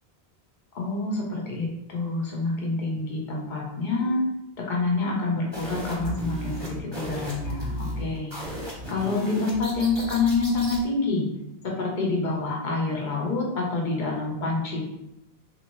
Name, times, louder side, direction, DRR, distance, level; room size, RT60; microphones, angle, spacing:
voice 1, 0.7-4.2 4.6-8.5 8.9-11.3 11.6-14.8, left 3 dB, 50° left, -2 dB, 0.9 m, -27 dB
sound 1, 5.5-10.8, equal, 25° right, 0.9 m, -35 dB
3.5 x 2.7 x 3.0 m, 0.89 s
omnidirectional pair, 1.1 m